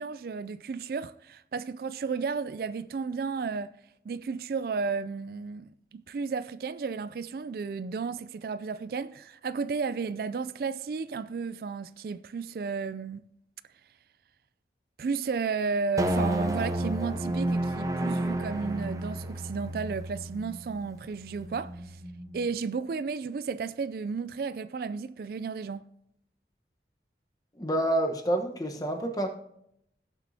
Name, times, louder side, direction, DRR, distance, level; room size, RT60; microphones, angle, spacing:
voice 1, 0.0-3.7 4.1-13.2 15.0-22.0 22.3-25.8, right 5 dB, 55° right, 0.3 m, -33 dB
sound 1, 16.0-22.5, right 1 dB, 20° right, 0.7 m, -31 dB
voice 2, 27.6-29.3, right 1 dB, 20° left, 1.0 m, -28 dB
17.0 x 7.3 x 2.7 m
head